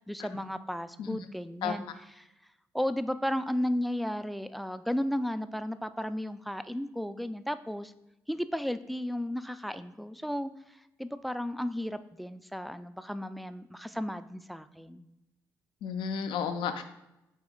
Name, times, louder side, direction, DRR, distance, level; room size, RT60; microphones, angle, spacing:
voice 1, 0.0-2.3 2.7-7.9 8.3-10.5 11.0-15.0, equal, ahead, 12 dB, 0.3 m, -34 dB
voice 2, 15.8-16.8, left 7 dB, 75° left, 8 dB, 0.4 m, -32 dB
4.2 x 3.0 x 3.6 m, 0.91 s
supercardioid pair, 55°, 8 cm